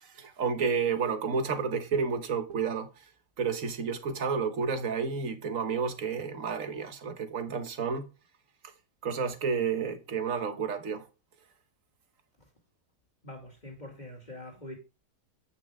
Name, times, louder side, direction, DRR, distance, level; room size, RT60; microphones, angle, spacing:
voice 1, 0.1-2.9 3.4-8.1 9.0-11.1, right 5 dB, 55° right, 1.4 m, -30 dB
voice 2, 13.2-14.8, left 1 dB, 25° left, 2.6 m, -44 dB
8.6 x 6.1 x 3.5 m
omnidirectional pair, 1.8 m